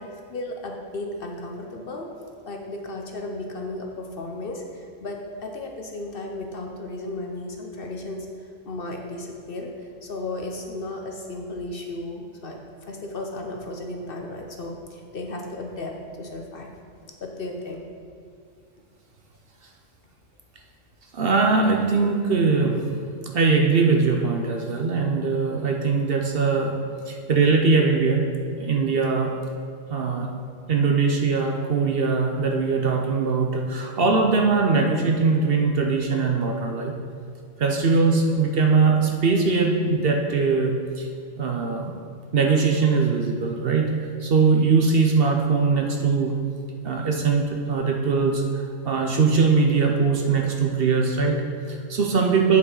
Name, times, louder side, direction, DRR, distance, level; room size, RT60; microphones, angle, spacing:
voice 1, 0.0-2.1 2.5-16.7 17.2-17.8, left 2 dB, 50° left, 2 dB, 0.8 m, -34 dB
voice 2, 21.1-22.9 23.3-26.8 27.1-28.3 28.6-29.3 29.9-30.3 30.7-37.0 37.6-41.1 41.4-41.9 42.3-46.4 46.8-52.6, right 4 dB, 55° right, 2 dB, 0.8 m, -21 dB
8.5 x 7.1 x 3.9 m, 2.3 s
omnidirectional pair, 1.3 m